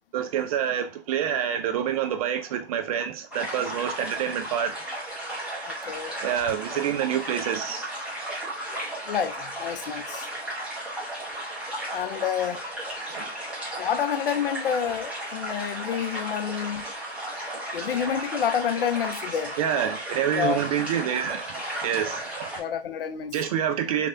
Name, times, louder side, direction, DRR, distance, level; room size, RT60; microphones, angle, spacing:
voice 1, 0.1-4.7 6.2-7.9 13.1-13.4 16.4-16.6 19.6-21.4 21.8-22.5 23.3-24.1, right 9 dB, 35° right, 0.5 m, -27 dB
sound 1, 3.3-22.6, right 1 dB, 5° right, 1.1 m, -35 dB
voice 2, 5.7-6.1 9.1-10.3 11.9-12.6 13.8-16.8 17.7-19.5 20.3-20.6 22.6-23.3, left 8 dB, 60° left, 0.5 m, -28 dB
3.3 x 3.2 x 2.6 m
hypercardioid pair, 125°, 32 cm